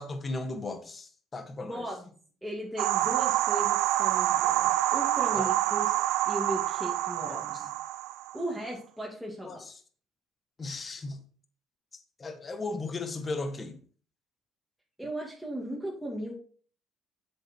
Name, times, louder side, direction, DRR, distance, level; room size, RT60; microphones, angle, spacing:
voice 1, 0.0-1.8 5.3-5.5 7.2-7.7 9.4-9.7 10.6-11.2 11.9-13.8, left 3 dB, 30° left, 7 dB, 1.5 m, -36 dB
voice 2, 1.7-2.1 2.4-7.7 8.3-9.6 15.0-16.3, right 1 dB, ahead, -4 dB, 2.5 m, -37 dB
sound 1, 2.8-8.5, right 14 dB, 80° right, 0.4 m, -27 dB
7.7 x 7.0 x 4.6 m, 0.43 s
supercardioid pair, 85°, 0 cm